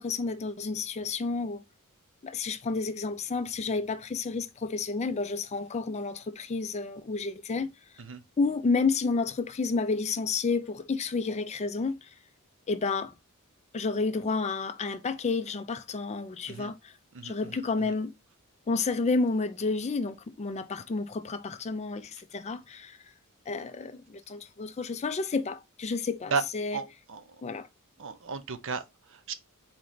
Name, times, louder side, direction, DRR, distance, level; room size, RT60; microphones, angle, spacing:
voice 1, 0.0-1.6 2.2-7.7 8.4-12.1 12.7-13.1 13.7-16.9 17.2-18.1 18.7-23.0 23.5-26.8 27.4-27.7, left 4 dB, 30° left, 0.4 m, -30 dB
voice 2, 26.7-27.4 28.0-29.3, right 5 dB, 60° right, 0.6 m, -34 dB
4.3 x 3.1 x 3.9 m
head